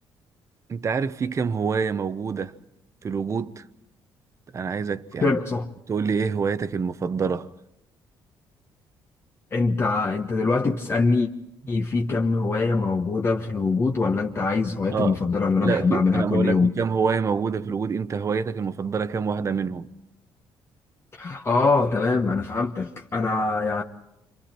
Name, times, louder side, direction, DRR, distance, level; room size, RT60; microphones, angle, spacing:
voice 1, 0.7-2.5 3.0-3.6 4.5-5.4 5.9-7.5 14.9-15.2 15.6-19.9, right 5 dB, 35° right, 0.9 m, -26 dB
voice 2, 5.2-5.7 9.5-11.3 11.7-16.7 21.2-23.8, left 4 dB, 30° left, 1.2 m, -23 dB
30.0 x 26.0 x 4.4 m
cardioid pair, 130°, 9 cm